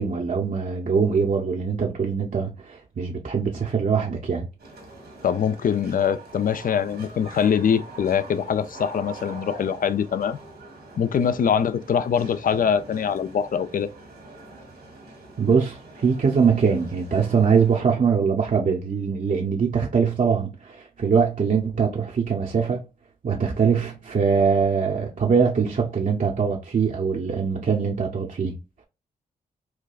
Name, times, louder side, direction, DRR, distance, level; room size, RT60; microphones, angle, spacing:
voice 1, 0.0-4.5 15.4-22.8 23.2-28.6, right 6 dB, 50° right, 0.7 m, -22 dB
sound 1, 4.6-17.8, right 2 dB, 80° right, 1.4 m, -44 dB
voice 2, 5.2-10.4 11.0-13.9, left 7 dB, 55° left, 0.4 m, -23 dB
4.5 x 2.3 x 2.3 m
cardioid pair, 45°, 17 cm